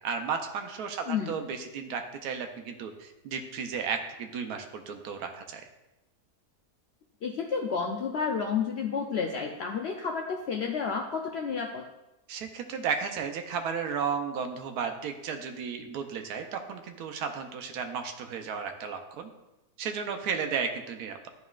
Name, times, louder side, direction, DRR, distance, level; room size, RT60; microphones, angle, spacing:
voice 1, 0.0-5.7 12.3-19.3 19.8-21.3, right 6 dB, 75° right, 5 dB, 1.1 m, -34 dB
voice 2, 1.1-1.4 7.2-11.8, left 6 dB, 80° left, 1 dB, 0.5 m, -31 dB
10.5 x 4.1 x 2.4 m, 0.97 s
omnidirectional pair, 1.7 m